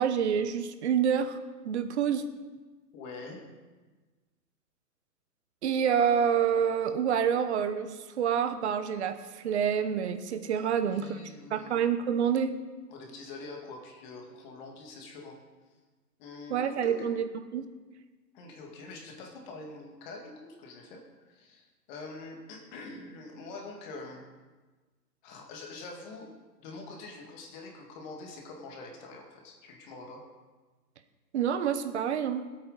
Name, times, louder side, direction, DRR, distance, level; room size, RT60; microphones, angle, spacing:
voice 1, 0.0-1.4 1.6-2.2 5.6-12.5 16.5-17.2 17.5-17.6 31.3-32.4, right 8 dB, 45° right, 10 dB, 1.0 m, -27 dB
voice 2, 2.9-3.4 10.8-11.7 12.9-15.4 16.2-17.1 18.3-21.0 21.3-24.2 25.2-26.3 26.6-30.2, left 3 dB, 25° left, 1 dB, 2.1 m, -45 dB
20.0 x 8.7 x 4.0 m, 1.3 s
hypercardioid pair, 155°, 50 cm